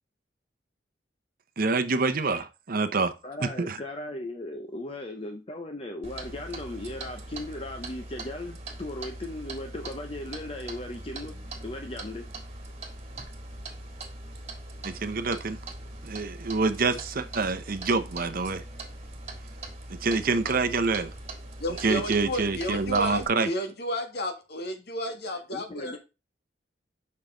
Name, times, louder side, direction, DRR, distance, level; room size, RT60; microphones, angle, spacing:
voice 1, 1.6-3.1 3.4-3.8 14.8-15.6 16.0-18.6 20.0-21.1 21.8-23.5, right 4 dB, 55° right, 0.8 m, -26 dB
voice 2, 3.2-11.3 11.6-12.2 25.5-26.0, left 1 dB, 35° left, 0.8 m, -37 dB
Clock, 6.0-23.3, right 2 dB, 35° right, 1.8 m, -41 dB
voice 3, 21.6-26.0, left 1 dB, 60° left, 1.8 m, -32 dB
7.0 x 5.7 x 3.8 m
head